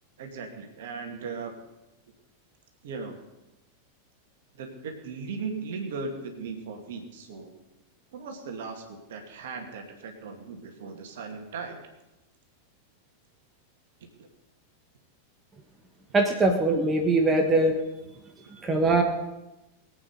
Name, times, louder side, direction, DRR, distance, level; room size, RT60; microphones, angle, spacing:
voice 1, 0.2-1.5 2.8-3.2 4.5-7.5 8.1-11.8 14.2-14.3, right 4 dB, 55° right, 4 dB, 2.3 m, -37 dB
voice 2, 16.1-17.8 18.5-19.0, right 2 dB, 15° right, 3 dB, 1.6 m, -22 dB
21.5 x 8.8 x 5.3 m, 1.0 s
figure-of-eight pair, 90°, 0 cm